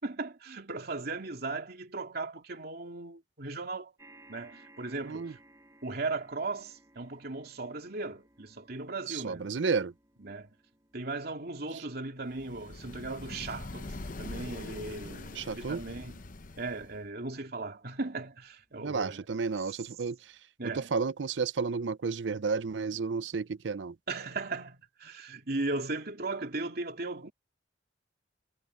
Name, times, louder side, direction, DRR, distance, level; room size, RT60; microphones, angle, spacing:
voice 1, 0.0-3.9 4.3-5.4 5.8-9.5 10.2-10.5 10.9-13.9 14.2-16.1 16.6-19.2 20.6-20.9 24.1-27.3, right 3 dB, 55° right, 2.8 m, -37 dB
sound 1, 4.0-18.5 19.3-19.4 19.6-19.7, right 1 dB, 15° right, 5.6 m, -62 dB
voice 2, 9.1-9.9 11.7-11.8 15.3-15.8 18.8-20.2 20.6-24.0, right 5 dB, 85° right, 0.6 m, -32 dB
sound 2, 12.3-17.0, left 2 dB, 50° left, 0.9 m, -43 dB
head